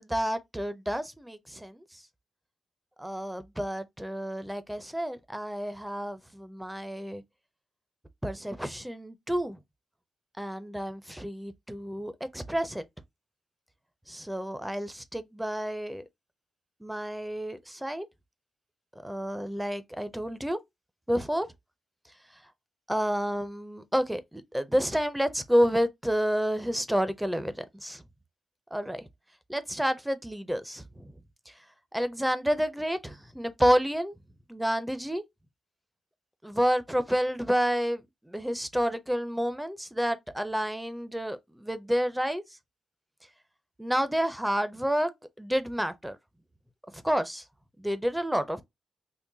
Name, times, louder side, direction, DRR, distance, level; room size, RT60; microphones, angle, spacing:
voice 1, 0.0-1.8 3.0-7.2 8.2-9.6 10.4-12.8 14.1-16.0 16.8-18.1 19.0-20.6 21.1-21.5 22.9-28.0 28.7-29.1 29.5-31.1 31.9-34.1 34.5-35.2 36.4-42.4 43.8-45.1 45.4-46.2 46.9-47.4 47.8-48.6, equal, 5° right, 0.4 m, -29 dB
3.7 x 2.5 x 2.6 m
wide cardioid pair, 135°, 0 cm